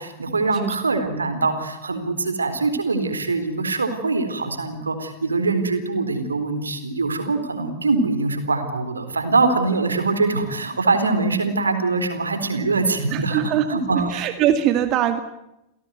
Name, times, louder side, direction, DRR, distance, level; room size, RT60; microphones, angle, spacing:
voice 1, 0.0-14.2, right 3 dB, 75° right, 9 dB, 4.0 m, -23 dB
voice 2, 13.1-15.2, right 10 dB, 35° right, 9 dB, 2.1 m, -22 dB
29.0 x 17.5 x 9.4 m, 0.87 s
figure-of-eight pair, 90°, 0 cm